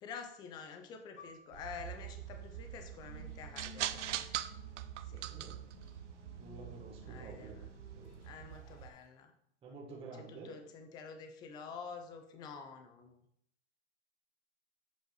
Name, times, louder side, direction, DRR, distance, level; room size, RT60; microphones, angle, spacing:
voice 1, 0.0-4.3 5.0-5.3 7.1-7.7 8.2-9.3 10.1-13.2, left 6 dB, 10° left, 7 dB, 0.5 m, -48 dB
Piano, 1.2-6.2 6.5-6.7 7.5-7.8, left 4 dB, 85° left, 1.8 m, -63 dB
sound 1, 1.5-8.9, right 12 dB, 75° right, 0.7 m, -43 dB
sound 2, 2.8-9.1, left 4 dB, 65° left, 1.4 m, -58 dB
voice 2, 5.3-5.6 6.4-7.6 7.9-8.1 9.6-10.5, right 3 dB, 15° right, -4 dB, 1.8 m, -49 dB
7.8 x 5.1 x 4.7 m, 0.72 s
hypercardioid pair, 155°, 36 cm